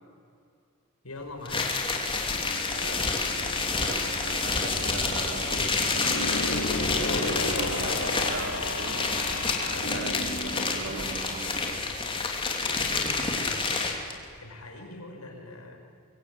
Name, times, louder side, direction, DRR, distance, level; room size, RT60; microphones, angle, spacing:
voice 1, 1.0-1.7 14.4-15.8, left 2 dB, 90° left, 3 dB, 5.2 m, -42 dB
sound 1, 1.4-14.1, left 4 dB, 25° left, 3.2 m, -29 dB
sound 2, 2.3-11.7, right 3 dB, 30° right, 2.2 m, -43 dB
voice 2, 2.7-6.3 7.1-11.3, right 2 dB, 60° right, 5 dB, 3.0 m, -40 dB
sound 3, 5.8-11.5, left 2 dB, 65° left, 3.4 m, -33 dB
25.5 x 23.0 x 9.6 m, 2.5 s
head